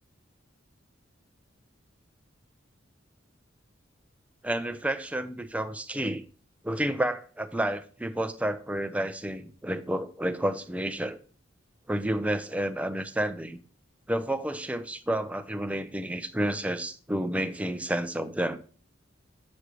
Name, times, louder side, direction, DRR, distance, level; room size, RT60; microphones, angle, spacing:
voice 1, 4.4-6.2 6.6-11.2 11.9-13.6 14.1-18.6, right 1 dB, 5° right, 0.5 m, -30 dB
8.0 x 6.1 x 3.2 m
head